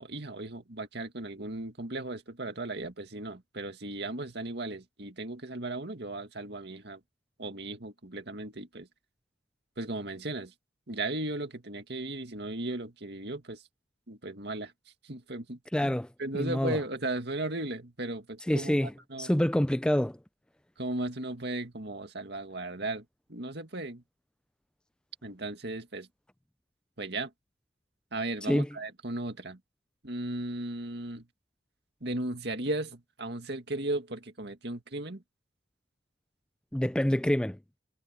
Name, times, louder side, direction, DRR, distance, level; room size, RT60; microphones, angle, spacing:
voice 1, 0.0-7.0 7.4-8.9 9.8-10.5 10.9-13.6 14.1-14.7 15.0-15.9 16.2-19.3 20.8-23.0 23.3-24.0 25.2-26.1 27.0-27.3 28.1-29.6 30.0-31.3 32.0-35.2, right 2 dB, 60° right, 2.3 m, -36 dB
voice 2, 15.7-16.1 16.3-16.8 18.4-20.2 28.4-28.7 36.7-37.6, left 1 dB, 5° left, 0.3 m, -27 dB
head